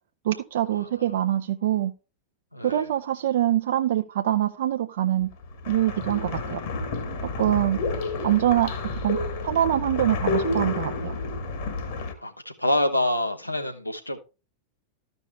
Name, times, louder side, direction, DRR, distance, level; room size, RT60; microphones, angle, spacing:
voice 1, 0.2-1.9 2.6-5.3 5.7-6.6 7.4-7.8 8.2-8.7 9.0-9.2 9.4-11.1, right 12 dB, 60° right, 0.5 m, -24 dB
voice 2, 2.5-2.9 12.2-12.3 12.6-14.2, left 1 dB, 85° left, 1.0 m, -26 dB
sound 1, 5.2-12.1, left 3 dB, 55° left, 1.5 m, -30 dB
13.5 x 5.3 x 3.2 m
figure-of-eight pair, 90°, 0 cm